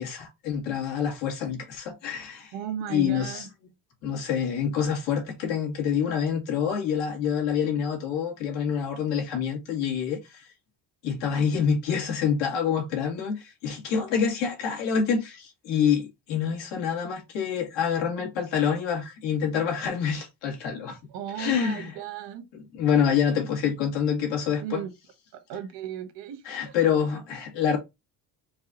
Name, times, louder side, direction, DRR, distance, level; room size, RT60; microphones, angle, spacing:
voice 1, 0.0-2.5 2.9-3.5 4.0-10.5 11.0-21.0 21.4-22.0 22.5-24.8 26.5-27.8, left 7 dB, 80° left, 2.0 m, -27 dB
voice 2, 2.5-3.5 21.1-22.5 24.6-24.9 25.3-26.8, right 9 dB, 80° right, 1.3 m, -36 dB
4.7 x 2.4 x 3.9 m
cardioid pair, 140°, 44 cm